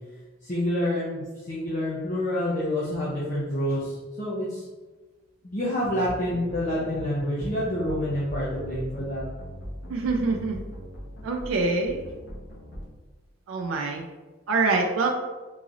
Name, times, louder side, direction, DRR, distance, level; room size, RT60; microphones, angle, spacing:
voice 1, 0.4-4.6 5.4-9.2, left 1 dB, 40° left, -8 dB, 0.7 m, -28 dB
sound 1, 5.8-12.8, equal, 70° left, 1.0 m, -40 dB
voice 2, 9.9-10.6 11.2-12.0 13.5-14.0 14.5-15.1, right 3 dB, 90° right, 2 dB, 0.4 m, -25 dB
3.8 x 2.9 x 2.5 m, 1.2 s
head